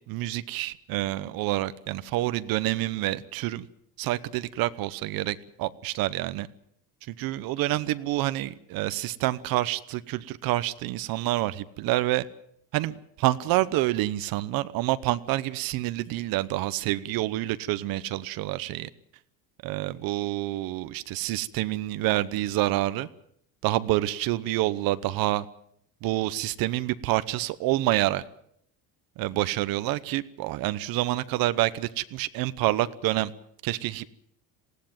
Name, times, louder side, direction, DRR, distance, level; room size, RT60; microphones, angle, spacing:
voice 1, 0.1-3.7 4.0-6.5 7.2-12.2 12.7-18.9 19.6-23.1 23.6-25.5 26.0-28.2 29.2-33.3 33.6-34.1, right 16 dB, 65° right, 14 dB, 1.0 m, -27 dB
20.0 x 17.0 x 9.0 m, 0.71 s
cardioid pair, 155°, 38 cm